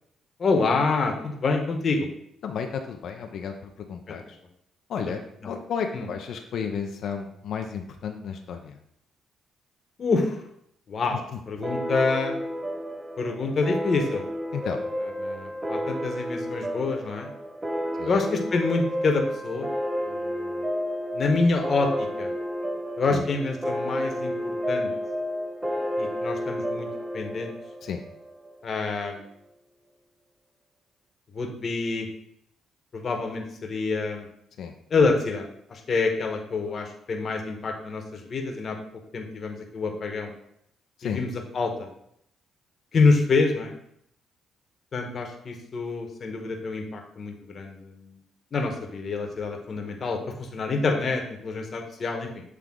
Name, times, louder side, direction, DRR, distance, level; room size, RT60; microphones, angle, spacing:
voice 1, 0.4-2.1 4.1-4.2 5.0-5.1 5.4-5.5 5.9-6.1 10.0-10.4 10.9-12.4 13.2-14.2 15.2-17.3 18.0-19.7 20.1-20.5 21.1-22.3 23.0-24.9 26.0-26.9 27.1-27.5 28.6-29.2 31.3-32.1 32.9-34.3 34.9-35.4 35.7-38.8 39.1-40.3 41.0-41.7 42.9-43.7 44.9-48.1 48.5-52.3, left 3 dB, 45° left, 3 dB, 1.1 m, -27 dB
voice 2, 2.4-3.5 3.9-4.4 4.9-5.2 5.4-8.8 14.5-14.8 18.0-18.2 23.1-23.2 27.8-28.0 34.6-34.7 41.0-41.2, left 7 dB, 70° left, 4 dB, 0.5 m, -32 dB
sound 1, 11.6-28.7, equal, 15° right, 0.6 m, -31 dB
7.6 x 3.4 x 3.7 m, 0.73 s
cardioid pair, 90°, 0 cm